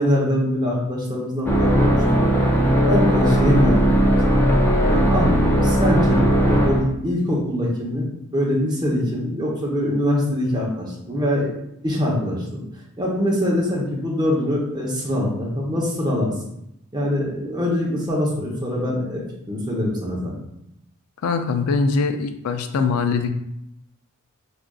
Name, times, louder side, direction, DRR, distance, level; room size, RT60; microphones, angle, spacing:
voice 1, 0.0-2.0 2.8-3.8 4.9-11.5 11.8-12.6 13.0-16.3 16.9-20.3, left 1 dB, 20° right, -3 dB, 0.8 m, -23 dB
sound 1, 1.5-6.9, equal, 10° left, 0.4 m, -18 dB
voice 2, 21.2-23.3, left 4 dB, 90° left, 7 dB, 0.4 m, -22 dB
4.8 x 2.4 x 2.3 m, 0.79 s
head